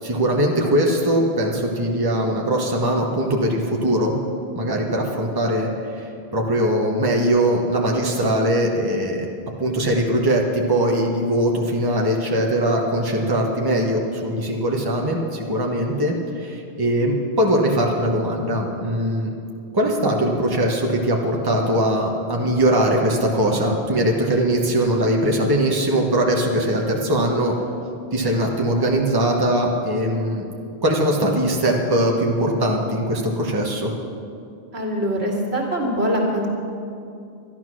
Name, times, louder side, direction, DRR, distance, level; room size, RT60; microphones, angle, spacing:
voice 1, 0.0-4.1 4.5-5.7 5.9-9.3 9.6-19.3 19.7-27.5 28.1-30.4 30.8-33.9, right 1 dB, 20° right, -1 dB, 1.3 m, -21 dB
voice 2, 34.7-36.5, equal, 75° right, -2 dB, 2.4 m, -23 dB
12.0 x 11.5 x 6.2 m, 2.5 s
omnidirectional pair, 1.1 m